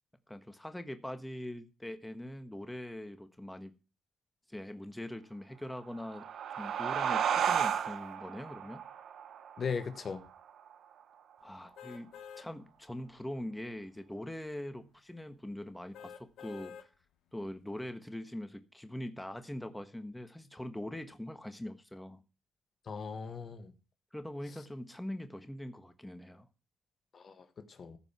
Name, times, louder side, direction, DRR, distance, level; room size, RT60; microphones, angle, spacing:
voice 1, 0.3-3.7 4.5-6.2 6.6-8.8 11.4-12.1 12.4-16.9 17.3-22.2 24.1-26.5, left 1 dB, 10° left, 1.4 m, -42 dB
sound 1, 5.8-11.0, right 8 dB, 75° right, 1.0 m, -34 dB
voice 2, 9.6-10.2 22.9-23.7 27.1-28.0, left 5 dB, 55° left, 1.4 m, -38 dB
sound 2, 11.8-12.5 13.0-13.1 15.9-16.9 17.4-17.5, left 8 dB, 85° left, 1.0 m, -48 dB
14.5 x 5.3 x 5.9 m
supercardioid pair, 60°, 0 cm